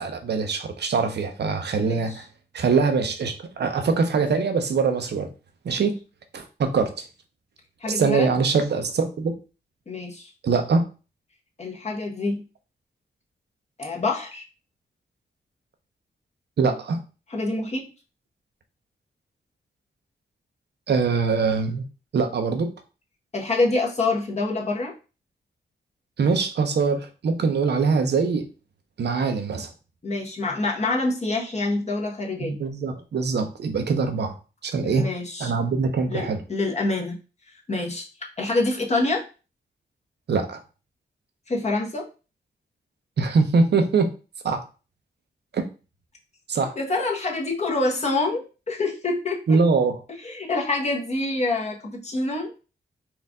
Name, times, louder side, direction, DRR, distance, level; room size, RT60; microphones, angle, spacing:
voice 1, 0.0-2.2 2.5-5.3 5.6-5.9 6.3-6.9 7.9-9.3 10.4-10.9 16.6-17.0 20.9-21.9 22.1-22.7 26.2-28.5 29.0-29.7 32.4-34.3 34.6-35.1 35.4-36.4 40.3-40.6 43.2-44.1 44.4-44.6 45.5-45.6 46.5-46.8 49.5-50.0, right 4 dB, 65° right, 6 dB, 0.8 m, -23 dB
voice 2, 1.8-2.2 7.8-8.3 9.9-10.3 11.6-12.4 13.8-14.4 17.3-17.9 23.3-24.9 30.0-32.5 34.8-35.5 36.1-37.2 37.7-38.0 38.4-39.2 41.5-42.1 46.8-49.4 50.2-52.5, left 2 dB, 35° left, -1 dB, 1.3 m, -26 dB
4.4 x 2.6 x 3.6 m, 0.33 s
cardioid pair, 90°, 18 cm